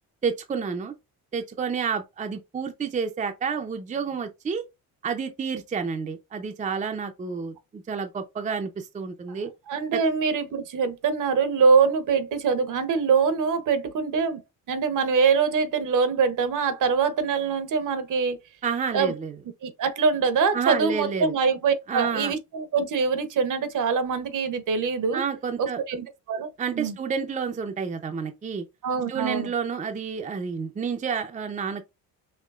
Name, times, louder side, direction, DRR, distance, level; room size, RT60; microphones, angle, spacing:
voice 1, 0.2-0.9 1.3-4.7 5.0-9.5 9.9-10.0 18.6-19.3 20.5-21.3 21.9-22.3 25.1-25.8 26.6-28.6 29.1-31.8, right 6 dB, 20° right, 0.5 m, -29 dB
voice 2, 9.7-14.4 14.7-18.4 18.9-19.1 19.6-25.2 25.6-26.5 26.7-27.0 28.8-29.5, right 5 dB, 55° right, 0.9 m, -24 dB
5.6 x 2.9 x 2.4 m
cardioid pair, 115°, 37 cm